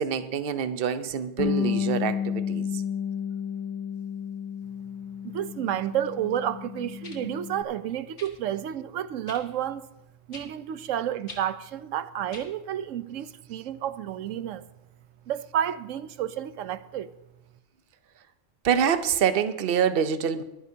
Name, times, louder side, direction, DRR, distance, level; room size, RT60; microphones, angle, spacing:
voice 1, 0.0-2.7 18.6-20.4, right 8 dB, 55° right, 0.9 m, -26 dB
Bass guitar, 1.4-7.6, left 8 dB, 50° left, 0.4 m, -32 dB
voice 2, 5.2-9.9 10.3-14.6 15.3-17.1, right 10 dB, 85° right, 1.0 m, -30 dB
sound 1, 5.9-6.0 7.0-7.2 8.2-8.4 9.3-9.4 10.3-10.5 11.3-11.4 12.3-12.5 13.4-13.5, left 3 dB, 70° left, 2.0 m, -43 dB
23.0 x 9.6 x 2.8 m
omnidirectional pair, 1.3 m